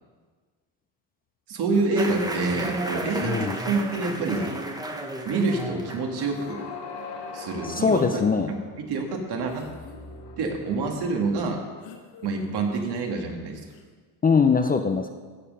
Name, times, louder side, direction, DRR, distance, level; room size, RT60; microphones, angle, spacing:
voice 1, 1.5-4.5 5.3-6.6 7.3-8.2 8.5-9.7 10.4-11.6 12.2-13.6, right 3 dB, 60° right, 2 dB, 2.0 m, -27 dB
sound 1, 1.7-2.3 3.9-4.0 4.2-5.2 6.3-6.9 7.9-8.4 8.9-9.0 9.5-10.0 11.8-12.7 13.7-13.9, left 5 dB, 90° left, 1.3 m, -45 dB
sound 2, 1.9-7.6, right 1 dB, 10° right, 0.9 m, -33 dB
sound 3, 5.4-11.5, left 4 dB, 55° left, 1.9 m, -42 dB
voice 2, 7.6-8.5 14.2-15.1, left 5 dB, 20° left, 6 dB, 0.5 m, -21 dB
15.5 x 5.3 x 5.5 m, 1.5 s
cardioid pair, 110°, 43 cm